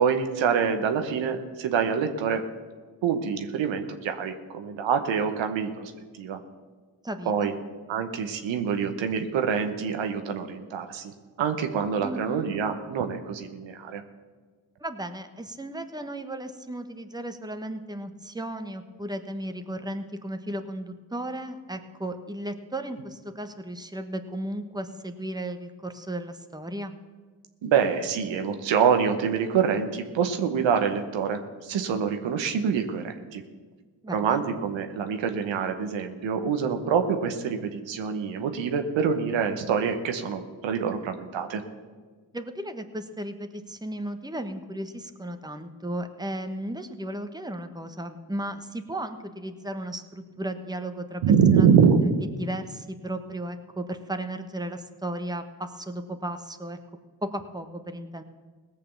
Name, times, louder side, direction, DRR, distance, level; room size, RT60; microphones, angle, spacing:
voice 1, 0.0-2.4 3.0-6.4 7.3-7.5 7.9-11.1 11.4-14.0 27.6-33.4 34.1-41.6 51.2-52.0, right 7 dB, 85° right, 6 dB, 1.0 m, -25 dB
voice 2, 7.0-7.6 12.0-12.5 14.8-26.9 34.0-34.4 42.3-51.2 51.6-51.7 52.0-52.1 52.4-56.8 57.2-58.2, right 1 dB, 10° right, 7 dB, 1.3 m, -35 dB
17.5 x 6.8 x 6.9 m, 1.4 s
supercardioid pair, 45°, 45 cm